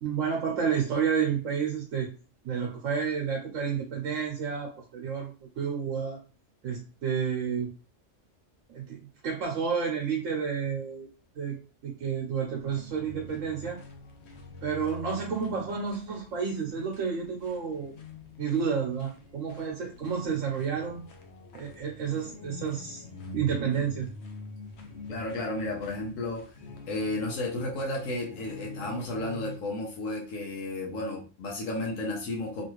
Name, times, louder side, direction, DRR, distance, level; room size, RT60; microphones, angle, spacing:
voice 1, 0.0-2.1 2.4-6.2 6.6-7.7 8.7-11.1 11.3-11.6 11.8-13.8 14.6-17.9 18.4-21.0 21.5-23.0 23.3-24.1, right 6 dB, 80° right, -1 dB, 1.1 m, -30 dB
sound 1, 12.4-29.6, left 3 dB, 65° left, 0.9 m, -45 dB
voice 2, 25.1-26.5 26.9-32.7, left 2 dB, 85° left, -1 dB, 1.2 m, -33 dB
3.1 x 2.5 x 3.0 m, 0.34 s
omnidirectional pair, 1.3 m